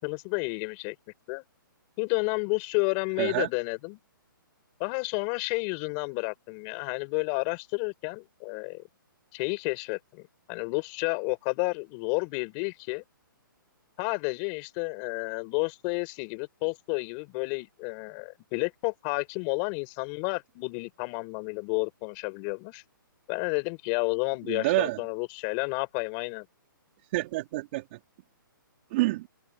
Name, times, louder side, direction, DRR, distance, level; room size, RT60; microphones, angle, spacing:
voice 1, 0.0-0.9 1.3-1.4 2.0-4.0 4.8-8.8 9.3-13.0 14.0-22.8 23.3-26.5, left 35 dB, 25° left, 6.5 m, -31 dB
voice 2, 3.2-3.5 24.5-25.0 27.1-28.0 28.9-29.3, right 20 dB, 30° right, 3.8 m, -27 dB
hypercardioid pair, 165°, 12 cm